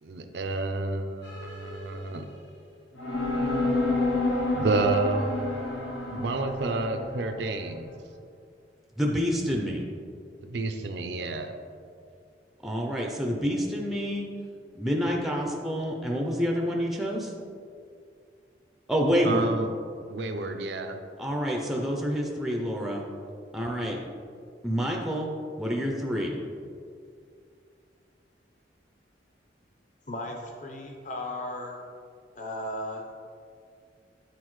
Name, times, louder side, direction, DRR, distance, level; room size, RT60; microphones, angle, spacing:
voice 1, 0.0-2.3 4.5-5.3 6.1-7.9 10.4-11.5 19.2-19.7 20.1-21.0, right 3 dB, 70° right, 6 dB, 0.5 m, -29 dB
sound 1, 1.2-2.4 3.0-7.7, left 2 dB, 80° left, 0.9 m, -29 dB
voice 2, 9.0-9.8 12.6-14.3 14.8-17.3 18.9-19.5 21.2-23.0 23.5-24.1 24.6-25.3 25.6-26.4, equal, ahead, -1 dB, 0.4 m, -28 dB
voice 3, 30.1-31.8 32.3-33.1, left 1 dB, 45° left, 1 dB, 0.8 m, -36 dB
8.3 x 4.0 x 3.1 m, 2.3 s
head